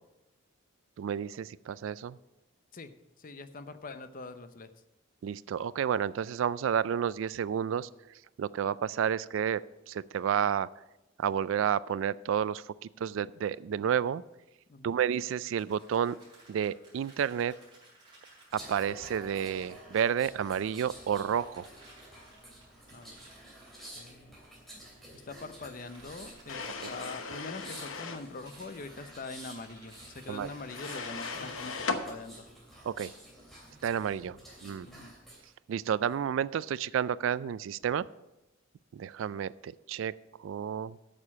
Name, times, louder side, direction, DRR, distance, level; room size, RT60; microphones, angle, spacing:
voice 1, 1.0-2.2 5.2-7.9 8.4-10.7 11.2-14.2 14.8-16.2 16.5-17.6 18.5-21.7 30.3-30.5 32.9-33.1 33.8-34.9 35.7-38.1 38.9-40.1 40.4-41.0, right 8 dB, 70° right, 19 dB, 0.3 m, -31 dB
voice 2, 2.7-4.7 14.7-15.0 22.9-23.2 23.9-24.4 25.1-32.5 34.2-34.4 34.8-35.1, left 3 dB, 45° left, 11 dB, 0.7 m, -44 dB
sound 1, 15.1-20.2 21.2-24.1 25.6-27.0 28.4-31.8, right 2 dB, 20° right, 4.0 m, -58 dB
sound 2, 18.5-35.5 35.9-36.1, right 1 dB, ahead, 2.8 m, -50 dB
sound 3, 26.5-28.3 30.7-32.0, left 4 dB, 75° left, 0.9 m, -37 dB
8.8 x 6.7 x 7.2 m, 0.97 s
head